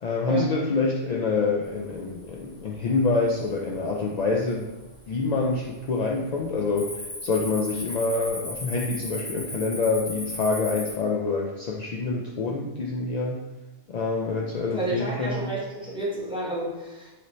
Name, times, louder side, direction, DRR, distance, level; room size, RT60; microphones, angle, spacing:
voice 1, 0.0-4.7 5.1-13.4 13.9-15.5, left 3 dB, 70° left, -2 dB, 0.4 m, -26 dB
Cricket, 1.9-2.4 2.8-3.3 3.9-4.0 4.6-5.2 5.4-5.7 6.1-10.9, left 1 dB, 45° left, 1.5 m, -36 dB
voice 2, 14.7-17.1, right 2 dB, 5° right, -7 dB, 1.0 m, -30 dB
4.9 x 2.8 x 3.1 m, 1.1 s
omnidirectional pair, 1.2 m